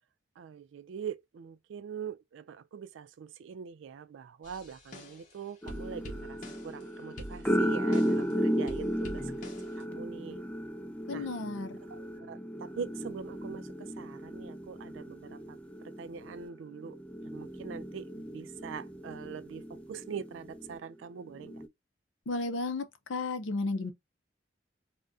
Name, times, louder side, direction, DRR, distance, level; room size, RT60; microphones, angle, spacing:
voice 1, 0.4-6.4 6.6-9.3 9.8-10.4 11.1-11.3 12.1-15.6 16.0-17.0 17.3-19.6 19.9-21.6, right 7 dB, 85° right, 0.3 m, -43 dB
sound 1, 4.4-5.4 5.7-6.9 7.2-8.3 8.7-9.8, equal, 40° left, 0.7 m, -46 dB
sound 2, 5.6-20.8 21.3-21.7, equal, 5° left, 0.3 m, -35 dB
voice 2, 11.1-11.8 22.3-23.9, left 3 dB, 90° left, 0.6 m, -33 dB
2.6 x 2.1 x 3.4 m
head